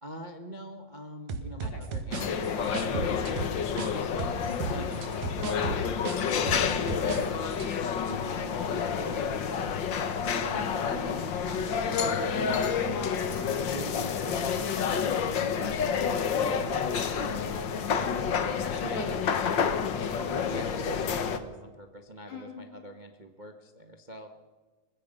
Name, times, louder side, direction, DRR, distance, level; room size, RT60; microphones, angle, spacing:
voice 1, 0.0-7.5 7.9-9.9 10.2-13.2 13.6-18.4 18.7-19.1 20.2-24.3, right 1 dB, 65° right, 5 dB, 0.4 m, -45 dB
sound 1, 1.3-3.9 4.2-7.2 7.5-7.7, right 4 dB, 90° right, 3.2 m, -34 dB
sound 2, 2.1-21.4, left 6 dB, 55° left, 1.4 m, -29 dB
voice 2, 17.8-20.6 22.3-22.6, left 2 dB, 80° left, 0 dB, 5.9 m, -43 dB
24.0 x 21.0 x 5.5 m, 1.3 s
omnidirectional pair, 3.5 m